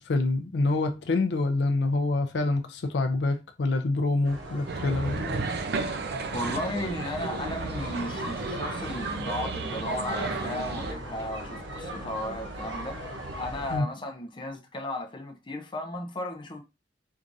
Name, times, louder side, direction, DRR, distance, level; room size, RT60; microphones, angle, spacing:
voice 1, 0.0-5.4 13.7-13.8, left 2 dB, 70° left, 0.5 m, -26 dB
sound 1, 4.2-13.8, right 1 dB, 90° right, 1.0 m, -37 dB
sound 2, 4.7-10.9, right 3 dB, 65° right, 0.5 m, -34 dB
voice 2, 6.3-16.6, left 1 dB, 30° left, 0.7 m, -35 dB
4.6 x 2.5 x 2.6 m
head